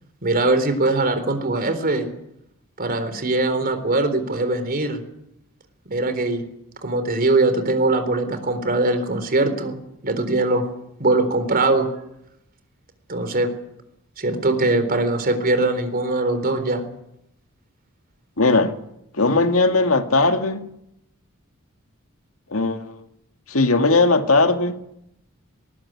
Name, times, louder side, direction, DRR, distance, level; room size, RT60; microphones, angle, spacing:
voice 1, 0.2-2.1 2.8-5.0 5.9-6.4 6.8-9.8 10.0-10.7 11.0-11.9 13.1-13.5 14.2-16.8, right 2 dB, 45° right, 3.9 m, -21 dB
voice 2, 18.4-18.7 19.1-20.7 22.5-23.0 23.5-24.8, left 3 dB, 80° left, 2.0 m, -18 dB
20.0 x 19.0 x 9.6 m
head